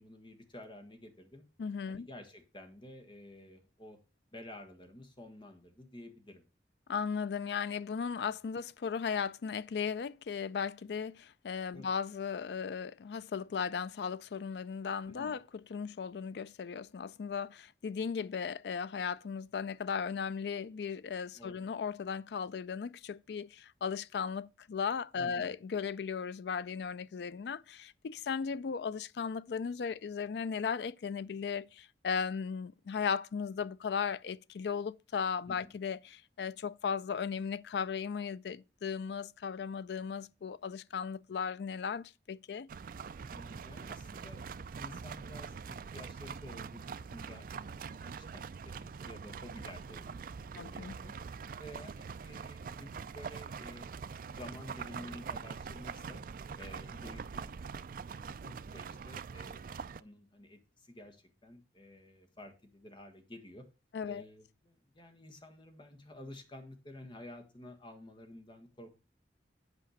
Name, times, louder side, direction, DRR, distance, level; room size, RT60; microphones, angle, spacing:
voice 1, 0.0-1.4 1.9-4.0 4.3-6.4 8.2-8.3 11.7-11.9 15.1-15.4 21.3-21.6 25.2-25.5 35.5-35.7 43.3-51.1 51.6-53.9 54.1-56.2 56.6-57.6 57.9-63.7 64.0-69.0, left 1 dB, 30° left, 1.5 m, -51 dB
voice 2, 1.6-2.1 6.9-15.4 15.7-42.7 50.6-51.0 63.9-64.2, left 6 dB, 65° left, 0.4 m, -36 dB
sound 1, 42.7-60.0, right 5 dB, 50° right, 0.4 m, -44 dB
8.4 x 5.0 x 6.4 m
head